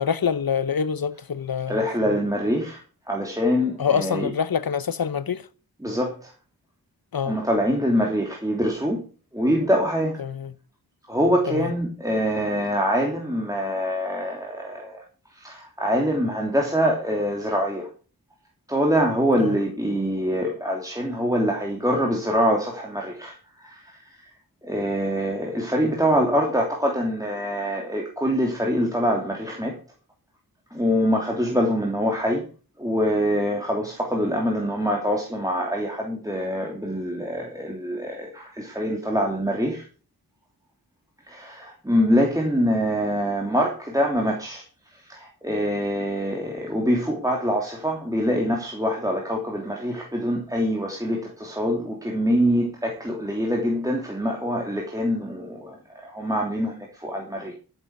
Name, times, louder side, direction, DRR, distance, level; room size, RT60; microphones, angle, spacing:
voice 1, 0.0-2.2 3.8-5.4 7.1-7.4 10.2-10.5 11.5-11.7 19.4-19.6, left 7 dB, 70° left, 0.8 m, -26 dB
voice 2, 1.7-2.8 3.1-4.3 5.8-6.3 7.2-9.0 9.3-10.2 11.1-15.0 15.4-17.9 18.7-23.3 23.6-23.9 24.6-29.8 30.7-32.4 32.8-39.8 41.3-44.6 45.1-55.8 56.0-57.5, equal, 10° right, 3.0 m, -24 dB
12.5 x 8.0 x 6.0 m
wide cardioid pair, 60°, 37 cm